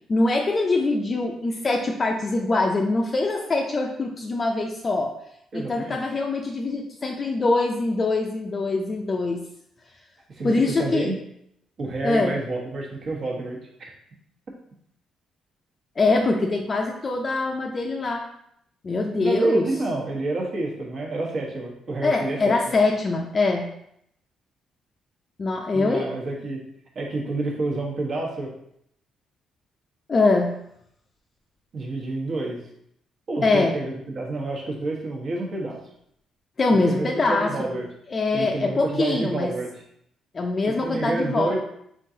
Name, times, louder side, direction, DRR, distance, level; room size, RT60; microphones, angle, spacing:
voice 1, 0.1-5.1 5.5-9.4 10.4-11.1 12.0-12.4 16.0-18.2 18.8-19.7 22.0-23.7 25.4-26.1 30.1-30.5 33.4-33.7 36.6-37.5 38.1-39.5 40.3-41.5, left 3 dB, 35° left, 1 dB, 0.4 m, -23 dB
voice 2, 5.5-6.0 10.3-11.2 11.8-13.9 19.2-22.7 25.7-26.6 26.9-28.5 31.7-32.6 33.3-35.8 36.7-37.9 38.3-39.7 40.8-41.6, right 2 dB, 55° right, -1 dB, 1.1 m, -28 dB
3.8 x 3.7 x 2.7 m, 0.73 s
cardioid pair, 90°, 0 cm